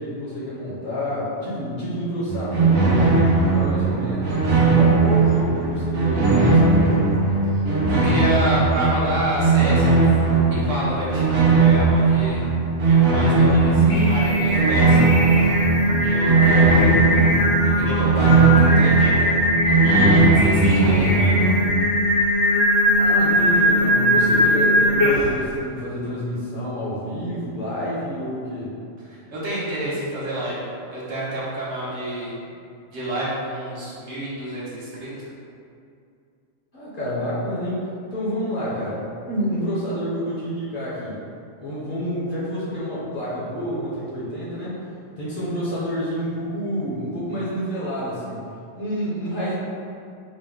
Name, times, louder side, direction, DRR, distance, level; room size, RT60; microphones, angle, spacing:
voice 1, 0.0-7.1 16.2-17.3 22.9-28.7 36.7-37.9 38.1-41.2 41.6-44.8 45.2-48.4 48.7-49.5, equal, 45° left, -9 dB, 0.9 m, -28 dB
sound 1, 2.3-21.5, right 4 dB, 90° right, 1.1 m, -18 dB
voice 2, 7.9-12.4 12.8-15.2 16.0-16.7 17.6-19.3 19.8-21.4 29.1-32.3 32.9-35.3, right 1 dB, 60° right, -8 dB, 1.2 m, -28 dB
Singing, 13.7-25.4, equal, 75° left, 1.3 m, -20 dB
4.1 x 2.2 x 3.5 m, 2.5 s
omnidirectional pair, 1.4 m